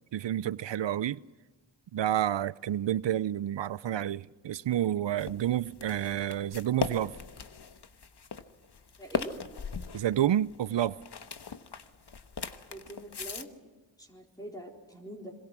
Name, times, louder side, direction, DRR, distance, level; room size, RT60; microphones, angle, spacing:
voice 1, 0.1-1.2 1.9-7.1 9.9-11.0, right 11 dB, 65° right, 0.6 m, -29 dB
sound 1, 5.2-13.4, left 5 dB, 55° left, 1.3 m, -39 dB
voice 2, 9.0-9.3 12.7-13.5 14.0-15.4, right 1 dB, 10° left, 4.1 m, -44 dB
26.0 x 22.0 x 6.1 m
cardioid pair, 40°, 47 cm